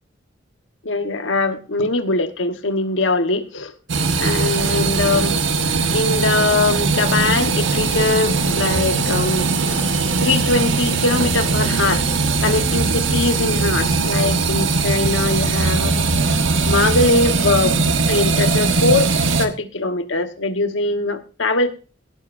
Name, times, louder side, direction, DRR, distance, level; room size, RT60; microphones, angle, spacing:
voice 1, 0.8-3.7 4.2-5.4 5.7-9.9 10.2-12.0 12.4-16.3 16.6-17.8 18.1-19.1 19.4-21.7, left 2 dB, 85° left, 7 dB, 1.3 m, -21 dB
sound 1, 3.9-19.5, right 4 dB, 85° right, 1.4 m, -20 dB
17.5 x 12.0 x 2.6 m, 0.34 s
head